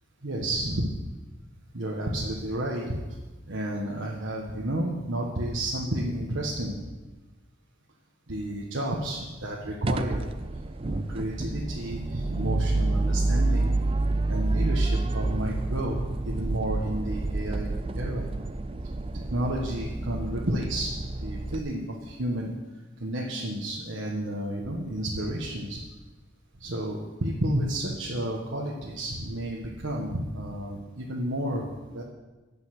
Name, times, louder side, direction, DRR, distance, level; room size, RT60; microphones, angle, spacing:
voice 1, 0.2-0.9 1.7-3.2 3.5-6.9 8.3-10.3 10.8-13.7 14.3-18.3 19.1-22.5 23.0-25.8 26.6-32.0, right 1 dB, 80° right, -3 dB, 1.3 m, -31 dB
sound 1, 9.8-21.6, right 2 dB, 30° right, 0.4 m, -28 dB
16.0 x 5.6 x 6.0 m, 1.2 s
head